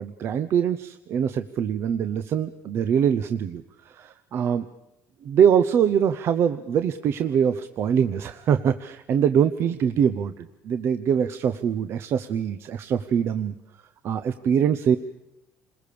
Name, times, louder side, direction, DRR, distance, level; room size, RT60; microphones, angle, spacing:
voice 1, 0.0-4.6 5.2-13.5 14.0-15.0, right 8 dB, 45° right, 11 dB, 0.8 m, -23 dB
28.5 x 21.0 x 6.9 m, 0.91 s
cardioid pair, 155°, 6 cm